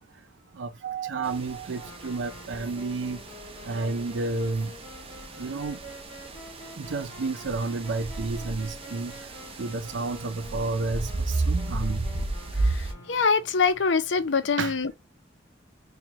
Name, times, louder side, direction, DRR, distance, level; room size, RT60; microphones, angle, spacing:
voice 1, 0.5-3.2 3.7-4.7 5.4-5.9 6.8-9.1 9.6-12.1 14.6-14.8, right 3 dB, 70° right, 0.5 m, -31 dB
sound 1, 1.2-12.9, right 2 dB, 30° right, 0.6 m, -34 dB
sound 2, 1.7-13.6, left 2 dB, 15° left, 1.9 m, -47 dB
voice 2, 13.1-14.9, left 5 dB, 65° left, 0.6 m, -23 dB
4.5 x 2.3 x 3.0 m
head